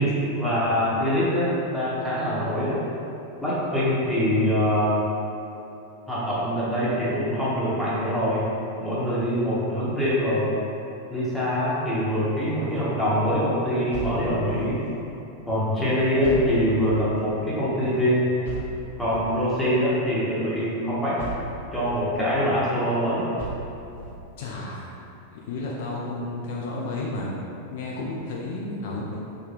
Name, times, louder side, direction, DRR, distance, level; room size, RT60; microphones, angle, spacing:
voice 1, 0.0-2.8 3.4-5.0 6.1-8.4 8.8-10.5 11.1-14.8 15.5-18.3 19.0-21.2 21.7-23.2, equal, ahead, -11 dB, 1.0 m, -24 dB
sound 1, 13.9-14.9 16.2-17.2 18.4-19.4 21.2-22.0 23.4-24.2, right 4 dB, 75° right, 1.1 m, -36 dB
voice 2, 24.4-25.0 25.3-27.3 27.7-29.2, left 2 dB, 50° left, -3 dB, 0.3 m, -32 dB
3.5 x 2.2 x 3.2 m, 2.8 s
figure-of-eight pair, 90°, 0 cm